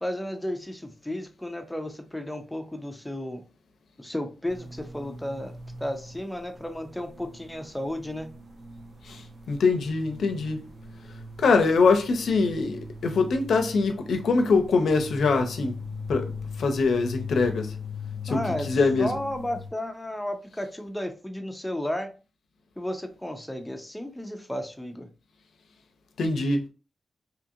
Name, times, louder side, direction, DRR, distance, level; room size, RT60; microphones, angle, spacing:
voice 1, 0.0-3.4 4.0-5.5 5.8-8.3 18.3-18.7 19.0-22.1 22.8-25.1, left 1 dB, 5° left, 0.3 m, -33 dB
sound 1, 4.5-19.7, left 4 dB, 45° right, 0.6 m, -40 dB
voice 2, 9.5-10.6 11.4-15.7 16.1-16.3 16.6-17.7 18.2-19.1 26.2-26.7, left 4 dB, 70° left, 0.5 m, -23 dB
2.7 x 2.5 x 2.6 m
wide cardioid pair, 170°, 0 cm